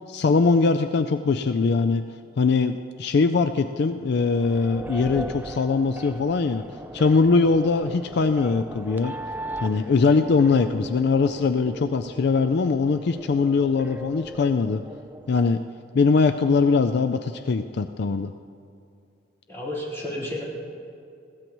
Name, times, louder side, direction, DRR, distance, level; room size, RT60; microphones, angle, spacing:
voice 1, 0.1-2.0 2.4-6.6 6.9-9.1 9.6-14.8 15.3-15.6 15.9-18.3, left 4 dB, 60° left, 9 dB, 0.4 m, -21 dB
sound 1, 4.1-15.5, right 1 dB, 10° right, 0.4 m, -38 dB
voice 2, 19.5-20.4, left 1 dB, 15° left, -7 dB, 4.0 m, -31 dB
20.5 x 16.5 x 3.1 m, 2.5 s
head